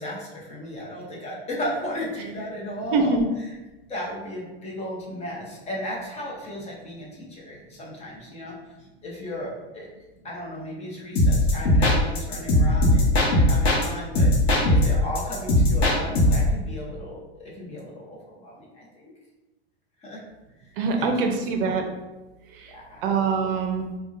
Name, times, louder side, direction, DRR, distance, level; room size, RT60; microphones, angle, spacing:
voice 1, 0.0-3.6 3.9-8.6 9.0-9.9 10.2-14.3 14.7-19.1 20.0-20.2 20.9-21.2 21.6-21.7 22.7-23.1, left 1 dB, 20° left, -3 dB, 0.7 m, -35 dB
sound 1, 11.2-13.9 14.2-16.5, left 1 dB, 85° left, 0.9 m, -19 dB
voice 2, 20.8-21.8 22.6-22.7 23.0-23.8, right 4 dB, 60° right, 3 dB, 0.5 m, -23 dB
3.5 x 2.2 x 2.5 m, 1.1 s
hypercardioid pair, 120°, 31 cm